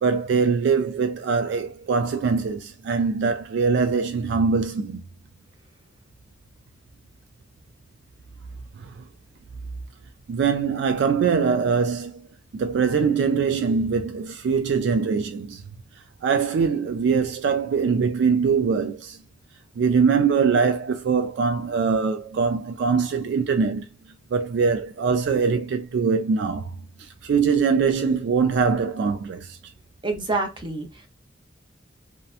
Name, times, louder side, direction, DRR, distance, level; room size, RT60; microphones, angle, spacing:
voice 1, 0.0-5.0 8.8-8.9 10.3-12.2 12.5-15.6 16.2-19.2 19.8-23.9 24.3-26.7 27.0-29.6, right 5 dB, 65° right, 0.3 m, -22 dB
voice 2, 30.0-31.1, right 3 dB, 25° right, 0.7 m, -27 dB
2.8 x 2.1 x 2.4 m
head